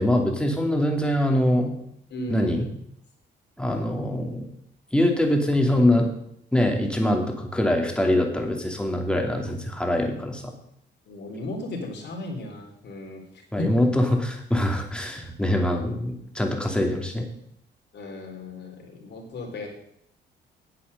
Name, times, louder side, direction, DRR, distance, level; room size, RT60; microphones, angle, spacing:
voice 1, 0.0-1.7 2.3-2.7 3.6-4.5 4.9-6.1 6.5-10.5 13.5-17.3, left 1 dB, 5° left, 1 dB, 2.6 m, -23 dB
voice 2, 2.1-2.6 10.1-10.2 11.1-13.2 13.6-13.7 16.7-16.9 17.9-19.7, left 1 dB, 60° left, 1 dB, 3.7 m, -35 dB
9.0 x 8.5 x 6.7 m, 0.72 s
cardioid pair, 90°, 20 cm